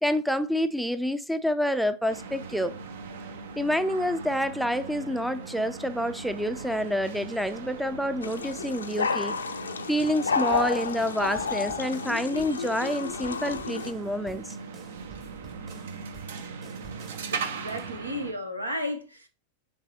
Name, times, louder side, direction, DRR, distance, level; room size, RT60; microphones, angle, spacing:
voice 1, 0.0-2.8 3.6-9.4 9.9-14.6, equal, ahead, 0.4 m, -28 dB
sound 1, 2.1-18.3, right 5 dB, 60° right, 0.7 m, -40 dB
sound 2, 8.2-13.9, left 5 dB, 70° left, 0.5 m, -31 dB
sound 3, 10.5-18.0, right 5 dB, 30° right, 1.2 m, -51 dB
voice 2, 17.3-19.3, left 1 dB, 85° right, 1.0 m, -34 dB
6.8 x 3.3 x 4.3 m
figure-of-eight pair, 90°, 0 cm